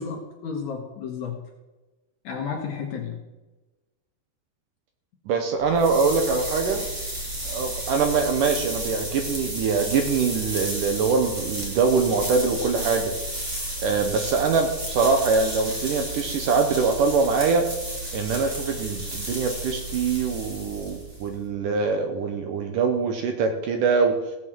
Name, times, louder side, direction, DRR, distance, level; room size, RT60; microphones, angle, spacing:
voice 1, 0.0-1.4 2.2-3.2, left 6 dB, 60° left, 2 dB, 2.1 m, -32 dB
voice 2, 5.3-6.8 7.5-13.1 13.8-17.7 18.1-24.2, right 5 dB, 70° right, 5 dB, 2.3 m, -23 dB
sound 1, 5.6-21.3, right 1 dB, 25° right, 2.2 m, -32 dB
16.5 x 6.2 x 7.5 m, 1.1 s
omnidirectional pair, 4.6 m